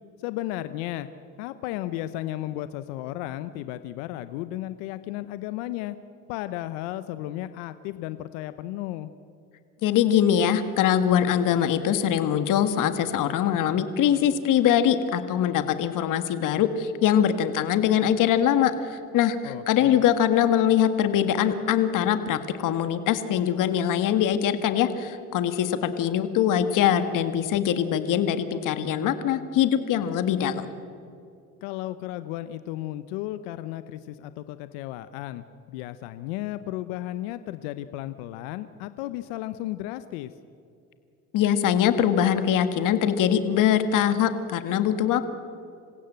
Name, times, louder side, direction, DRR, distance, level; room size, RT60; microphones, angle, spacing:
voice 1, 0.2-1.1 1.4-5.9 6.3-9.1 19.4-20.0 31.6-40.3, left 14 dB, 80° left, 13 dB, 0.9 m, -34 dB
voice 2, 9.8-30.7 41.3-45.3, left 9 dB, 60° left, 10 dB, 1.8 m, -23 dB
27.5 x 16.0 x 8.0 m, 2.5 s
supercardioid pair, 80°, 36 cm